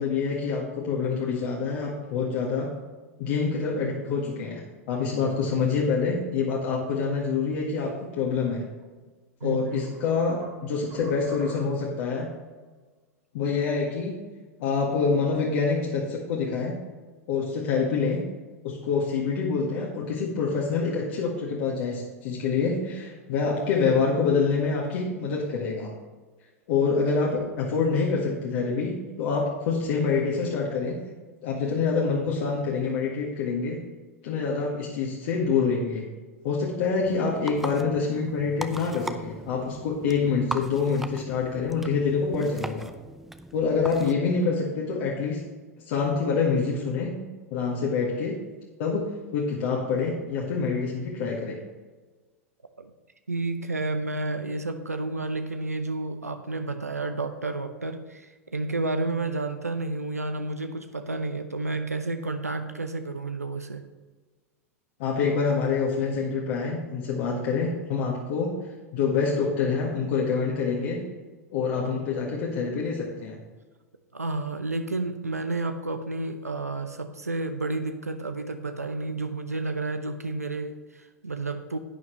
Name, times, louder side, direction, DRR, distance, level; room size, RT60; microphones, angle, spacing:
voice 1, 0.0-2.7 3.2-8.6 9.4-12.3 13.3-14.2 14.6-16.8 17.3-18.2 18.6-25.9 26.7-31.0 31.4-33.8 34.2-36.1 36.4-42.9 43.5-45.4 45.9-47.2 47.5-48.3 48.8-49.0 49.3-51.6 65.0-68.5 68.9-71.0 71.5-73.4, left 5 dB, 55° left, -3 dB, 1.7 m, -26 dB
sound 1, 8.8-8.9 9.4-12.0, right 3 dB, 40° right, 2.4 m, -45 dB
voice 2, 9.4-9.8 52.8-52.9 53.3-63.8 71.8-72.0 74.1-81.8, right 2 dB, 85° right, 8 dB, 0.6 m, -31 dB
sound 2, 37.0-44.1, right 1 dB, 5° right, 0.6 m, -39 dB
11.0 x 9.5 x 3.2 m, 1.3 s
figure-of-eight pair, 90°, 8 cm